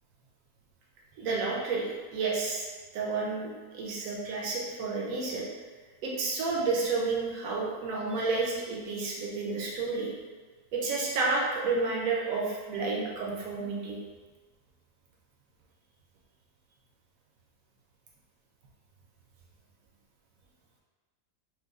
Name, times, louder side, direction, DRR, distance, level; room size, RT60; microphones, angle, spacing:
voice 1, 1.2-2.7 2.9-5.5 6.0-10.1 10.7-14.0, right 3 dB, 65° right, -3 dB, 0.9 m, -30 dB
4.6 x 2.2 x 2.4 m, 1.4 s
omnidirectional pair, 1.8 m